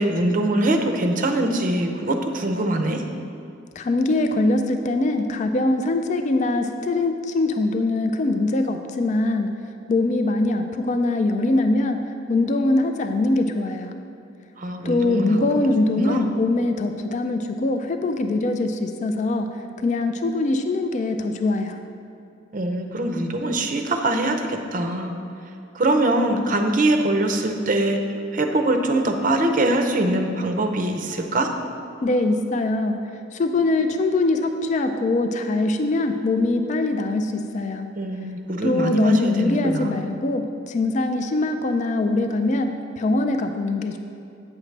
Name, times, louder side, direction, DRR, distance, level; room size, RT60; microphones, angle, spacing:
voice 1, 0.0-3.0 14.6-15.6 16.0-16.3 22.5-25.1 25.7-28.0 28.3-31.5 37.9-40.0, right 1 dB, 40° right, 5 dB, 0.6 m, -23 dB
voice 2, 3.8-9.5 9.9-12.0 12.3-13.9 14.8-19.5 19.8-21.8 32.0-33.0 33.3-37.9 38.6-44.0, left 2 dB, 35° left, 7 dB, 0.3 m, -22 dB
8.6 x 6.2 x 3.2 m, 2.7 s
head